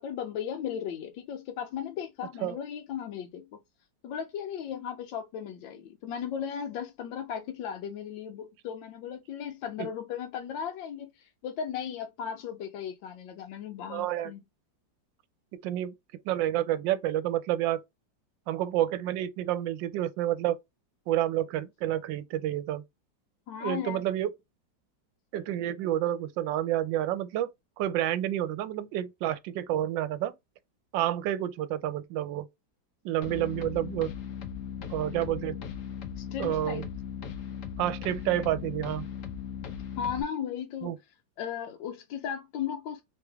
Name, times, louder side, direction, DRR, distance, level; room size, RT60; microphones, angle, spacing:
voice 1, 0.0-3.5 4.0-14.4 23.5-24.0 36.2-36.9 40.0-40.9 41.4-43.0, left 8 dB, 80° left, 1.3 m, -36 dB
voice 2, 13.9-14.3 15.6-15.9 16.2-17.8 18.5-20.6 21.1-22.8 23.6-24.3 25.3-27.5 27.8-30.3 30.9-32.5 33.0-34.1 34.9-35.6 36.4-36.9 37.8-39.1 40.8-41.0, right 12 dB, 80° right, 1.3 m, -29 dB
sound 1, 33.2-40.2, left 8 dB, 60° left, 0.9 m, -38 dB
3.4 x 3.2 x 3.4 m
omnidirectional pair, 2.0 m